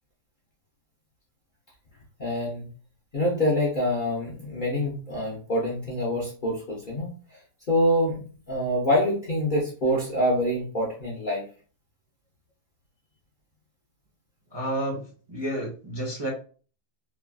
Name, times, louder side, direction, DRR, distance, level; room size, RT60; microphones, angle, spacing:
voice 1, 2.2-2.7 3.1-7.1 7.7-11.4, equal, 45° left, -4 dB, 0.7 m, -26 dB
voice 2, 14.5-15.0 15.3-16.3, right 1 dB, 25° right, -4 dB, 0.5 m, -30 dB
3.1 x 2.4 x 2.2 m, 0.39 s
omnidirectional pair, 1.6 m